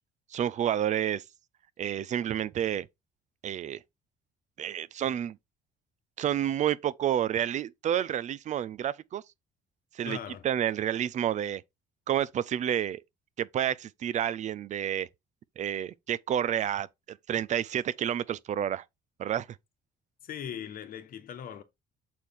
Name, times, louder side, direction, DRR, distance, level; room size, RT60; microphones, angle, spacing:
voice 1, 0.3-1.2 1.8-2.9 3.4-3.8 4.6-5.4 6.2-9.2 9.9-10.2 10.4-11.6 12.1-13.0 13.4-15.1 15.6-18.8 19.2-19.5, right 10 dB, 45° right, 0.4 m, -29 dB
voice 2, 10.0-10.5 20.2-21.6, left 9 dB, 60° left, 1.1 m, -39 dB
6.4 x 4.3 x 3.5 m
cardioid pair, 110°, 17 cm